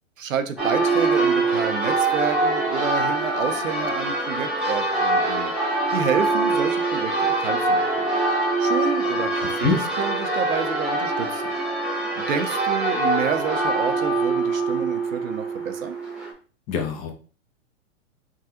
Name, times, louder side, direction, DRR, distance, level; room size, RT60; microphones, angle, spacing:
voice 1, 0.2-5.5 5.9-7.1 7.4-7.9 8.6-11.4 12.2-16.0, right 7 dB, 90° right, 9 dB, 0.6 m, -29 dB
Church bell, 0.6-16.3, right 2 dB, ahead, 0.9 m, -24 dB
voice 2, 9.4-9.8 16.7-17.1, left 6 dB, 20° left, 3 dB, 0.4 m, -25 dB
3.5 x 2.3 x 2.7 m, 0.37 s
hypercardioid pair, 120°, 38 cm